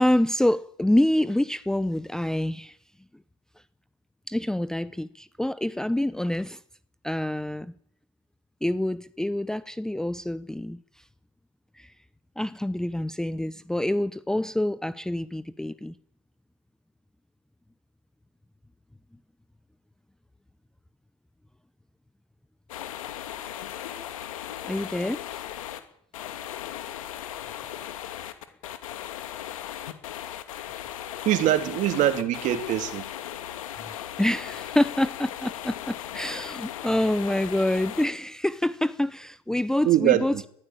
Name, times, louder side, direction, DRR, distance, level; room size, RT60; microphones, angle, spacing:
voice 1, 0.0-2.8 4.3-6.6 7.0-7.7 8.6-10.8 11.8-11.9 12.4-16.0 24.6-25.4 34.2-40.5, left 1 dB, 5° left, 0.8 m, -26 dB
sound 1, 22.7-25.8 26.1-38.1, left 11 dB, 75° left, 2.7 m, -37 dB
voice 2, 31.2-33.1 39.8-40.4, right 12 dB, 45° right, 3.0 m, -23 dB
21.5 x 15.5 x 8.9 m
hypercardioid pair, 95°, 17 cm